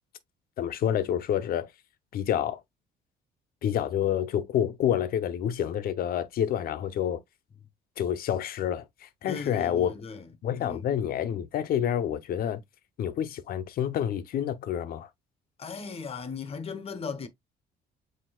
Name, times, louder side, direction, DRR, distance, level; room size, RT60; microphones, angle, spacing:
voice 1, 0.6-1.7 2.1-2.6 3.6-7.2 8.0-9.9 10.4-12.6 13.0-15.1, left 10 dB, 60° left, 0.8 m, -28 dB
voice 2, 9.3-10.2 10.6-10.8 15.6-17.3, left 5 dB, 35° left, 1.0 m, -37 dB
7.5 x 2.8 x 2.3 m
cardioid pair, 110°, 17 cm